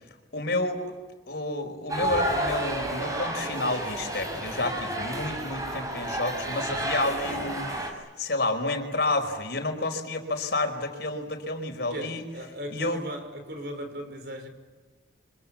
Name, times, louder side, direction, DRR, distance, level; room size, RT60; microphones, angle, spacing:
voice 1, 0.3-0.8 1.3-12.2 12.7-13.0, left 2 dB, 60° left, 4.9 m, -30 dB
sound 1, 1.9-7.9, right 1 dB, 20° right, 5.3 m, -31 dB
voice 2, 11.9-14.5, equal, 55° right, 5.4 m, -37 dB
29.0 x 26.0 x 7.2 m
head